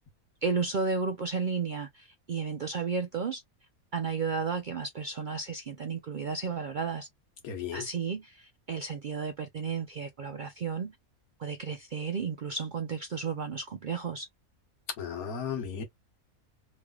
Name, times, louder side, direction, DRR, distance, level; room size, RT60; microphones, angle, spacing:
voice 1, 0.4-3.4 3.9-7.1 7.7-11.0 11.4-14.3, right 5 dB, 80° right, 0.4 m, -33 dB
voice 2, 7.4-7.8 15.0-15.8, left 7 dB, 80° left, 1.5 m, -35 dB
3.2 x 3.1 x 2.3 m
omnidirectional pair, 1.5 m